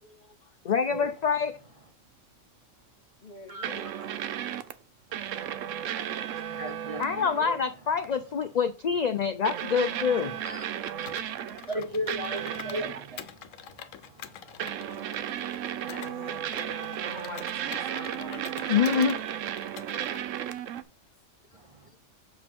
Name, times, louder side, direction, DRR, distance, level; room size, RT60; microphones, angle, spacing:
voice 1, 0.0-0.6 3.2-4.0 5.3-5.6 14.2-14.6 15.6-19.1 21.8-22.0, left 4 dB, 45° left, 0.8 m, -47 dB
voice 2, 0.6-1.5 7.0-10.3 18.7-19.2, left 6 dB, 60° left, 0.4 m, -26 dB
voice 3, 3.5-3.9 6.5-7.6 10.4-10.7 11.0-11.1 11.7-14.7 18.6-18.8 21.5-21.8, equal, 35° right, 0.6 m, -37 dB
sound 1, 3.6-4.7 5.1-7.4 8.0-8.2 9.4-11.8 12.1-13.2 14.6-20.8, right 10 dB, 80° right, 1.0 m, -34 dB
Computer keyboard, 11.1-12.9 13.2-16.1 16.5-19.2 19.6-20.2, left 9 dB, 85° left, 1.1 m, -45 dB
7.4 x 6.5 x 3.6 m
omnidirectional pair, 1.3 m